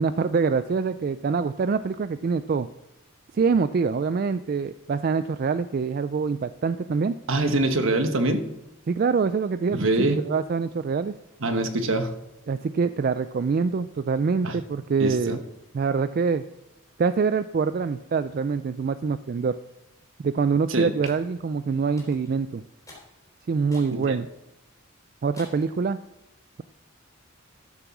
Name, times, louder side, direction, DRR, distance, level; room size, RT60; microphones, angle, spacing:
voice 1, 0.0-2.7 3.3-7.2 8.9-11.1 12.5-15.4 15.7-16.4 17.0-19.6 20.2-22.6 23.5-24.3 25.2-26.0, right 5 dB, 45° right, 12 dB, 0.3 m, -25 dB
voice 2, 7.3-8.4 9.7-10.2 11.4-12.1 14.4-14.5 15.0-15.4 20.7-20.9 24.1-24.2, right 2 dB, 70° right, 7 dB, 1.2 m, -24 dB
sound 1, 21.1-21.3 22.0-22.4 22.9-23.1 23.7-24.0 24.5-24.6 25.4-25.7, left 2 dB, 15° left, 3.7 m, -47 dB
13.0 x 7.0 x 6.0 m, 0.91 s
head